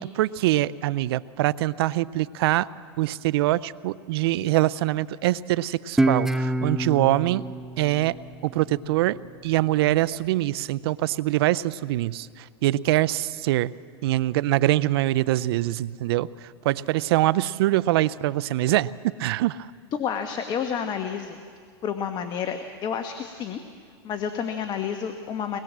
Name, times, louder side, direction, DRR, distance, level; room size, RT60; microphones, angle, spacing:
voice 1, 0.0-2.7 3.0-7.5 7.8-8.2 8.4-13.7 14.0-18.9 19.2-19.7, right 16 dB, 65° right, 18 dB, 0.6 m, -24 dB
Guitar, 6.0-9.2, right 1 dB, 5° right, 0.6 m, -27 dB
voice 2, 20.0-21.4 21.8-23.6 24.0-25.6, left 7 dB, 30° left, 7 dB, 1.3 m, -30 dB
23.5 x 20.5 x 7.5 m, 2.1 s
hypercardioid pair, 125°, 14 cm